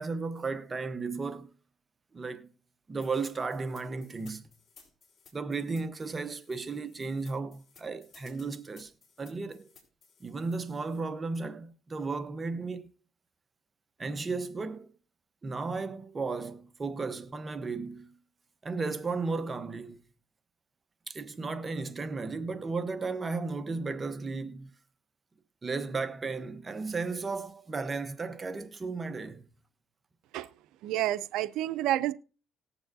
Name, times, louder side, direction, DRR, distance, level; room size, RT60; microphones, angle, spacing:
voice 1, 0.0-1.5 2.1-2.5 2.9-4.5 5.3-8.9 9.2-9.7 10.2-12.8 14.0-14.9 15.4-18.1 18.6-20.0 21.1-24.7 25.6-29.4, right 4 dB, 30° right, 0.9 m, -34 dB
sound 1, 3.0-11.0, left 5 dB, 50° left, 3.9 m, -59 dB
voice 2, 30.8-32.1, right 14 dB, 85° right, 0.5 m, -29 dB
19.0 x 7.1 x 2.6 m
supercardioid pair, 75°, 0 cm